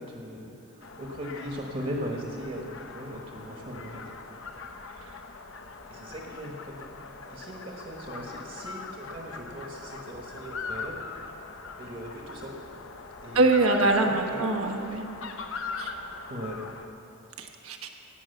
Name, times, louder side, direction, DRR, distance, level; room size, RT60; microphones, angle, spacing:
voice 1, 0.0-4.0 5.9-6.9 7.3-10.9 11.8-12.5 13.2-13.5 13.7-14.5 16.3-16.6, equal, 35° right, 0 dB, 1.2 m, -39 dB
sound 1, 0.8-16.9, left 4 dB, 60° left, 0.8 m, -41 dB
voice 2, 13.3-15.1 15.8-15.9 17.4-17.9, right 2 dB, 75° right, 3 dB, 1.2 m, -24 dB
17.5 x 6.2 x 7.9 m, 2.7 s
head